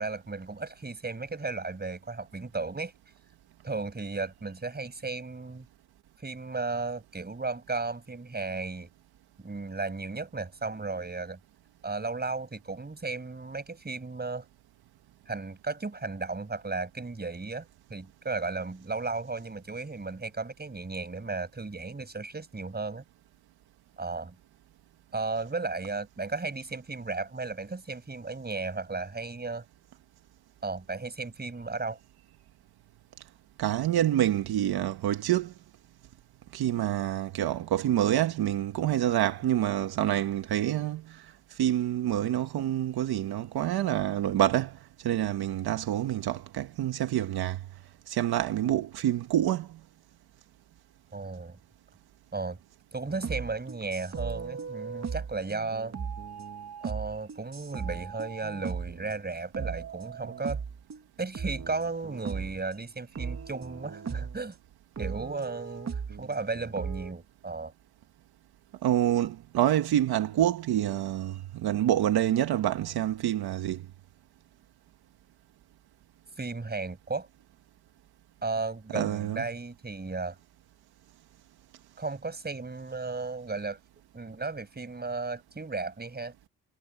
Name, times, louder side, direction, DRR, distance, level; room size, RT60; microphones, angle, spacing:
voice 1, 0.0-2.9 3.6-5.7 6.2-8.9 9.4-11.4 11.8-14.4 15.3-23.0 24.0-24.4 25.1-29.6 30.6-32.0 51.1-51.6 52.3-52.6 52.9-55.9 56.8-60.6 61.2-64.5 65.0-67.7 76.4-77.3 78.4-80.4 82.0-83.8 84.1-86.3, right 3 dB, 25° right, 6.0 m, -35 dB
voice 2, 33.6-35.5 36.5-47.6 48.1-49.8 68.8-73.8 78.9-79.4, right 12 dB, 80° right, 1.5 m, -27 dB
sound 1, 53.1-59.2 59.5-61.0 61.3-62.6 63.2-64.4 65.0-67.1, right 6 dB, 45° right, 2.2 m, -37 dB
supercardioid pair, 65°, 37 cm